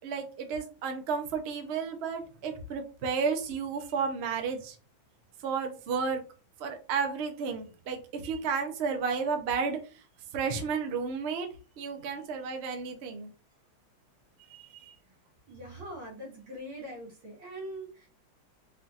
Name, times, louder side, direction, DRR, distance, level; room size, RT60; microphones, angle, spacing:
voice 1, 0.0-4.8 5.4-6.2 6.6-9.8 10.3-11.5 11.8-13.3 14.5-15.0, right 5 dB, 70° right, 5 dB, 0.6 m, -32 dB
voice 2, 15.5-18.1, equal, 90° right, -2 dB, 2.5 m, -42 dB
4.7 x 2.7 x 2.4 m, 0.34 s
omnidirectional pair, 2.2 m